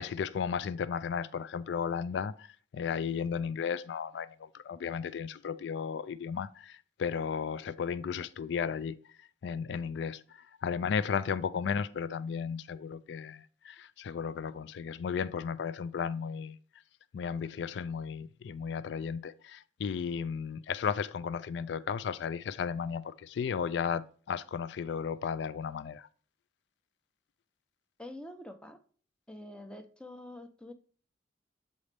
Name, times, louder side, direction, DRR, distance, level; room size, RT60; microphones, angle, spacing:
voice 1, 0.0-9.0 9.4-16.6 17.1-26.1, left 6 dB, 70° left, 0.3 m, -34 dB
voice 2, 28.0-28.8 29.3-30.7, left 1 dB, 5° left, 0.6 m, -46 dB
8.3 x 4.1 x 3.3 m
head